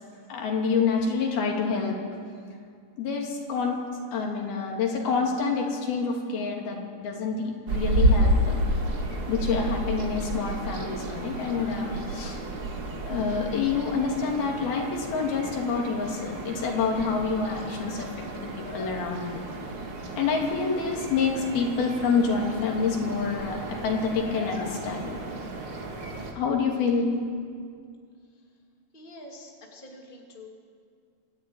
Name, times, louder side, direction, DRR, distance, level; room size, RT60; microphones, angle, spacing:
voice 1, 0.3-2.0 3.0-3.8 4.1-8.5 9.3-12.4 13.1-19.5 20.2-25.2 25.6-25.7 26.4-27.1, left 5 dB, 85° left, 0 dB, 4.4 m, -27 dB
sound 1, 7.7-26.3, right 1 dB, 45° right, 2.4 m, -31 dB
voice 2, 28.9-30.5, left 1 dB, 15° left, 0 dB, 2.4 m, -46 dB
25.0 x 13.0 x 9.4 m, 2.2 s
omnidirectional pair, 4.3 m